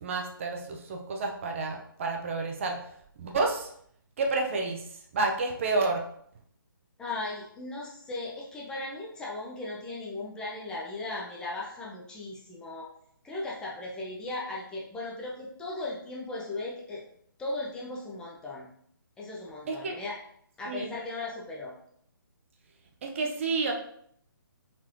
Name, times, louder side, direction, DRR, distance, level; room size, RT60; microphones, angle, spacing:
voice 1, 0.0-2.8 3.2-3.7 4.2-4.8 5.1-6.0 19.7-20.0 20.7-20.9 23.0-23.7, right 3 dB, 35° right, 2 dB, 0.6 m, -29 dB
voice 2, 7.0-12.9 13.2-17.0 17.4-18.7 19.2-20.1 20.6-21.7, left 2 dB, 5° left, -5 dB, 0.6 m, -37 dB
4.2 x 4.1 x 3.1 m, 0.66 s
figure-of-eight pair, 140°, 12 cm